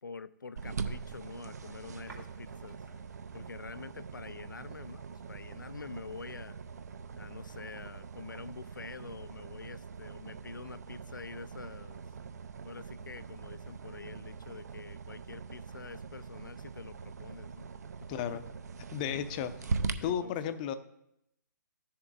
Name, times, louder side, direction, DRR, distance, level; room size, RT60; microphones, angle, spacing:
voice 1, 0.0-2.8 3.3-6.7 7.2-12.0 12.6-17.7 18.0-18.4 19.1-19.5 20.0-20.5, left 4 dB, 75° left, 15 dB, 0.4 m, -47 dB
sound 1, 0.6-19.9, right 5 dB, 55° right, 0.6 m, -42 dB
sound 2, 1.0-8.3, right 2 dB, 75° right, 2.9 m, -61 dB
voice 2, 18.1-18.4 18.9-19.5 20.0-20.7, left 9 dB, 25° left, 12 dB, 0.5 m, -33 dB
14.0 x 7.0 x 2.5 m, 0.80 s
figure-of-eight pair, 130°, 11 cm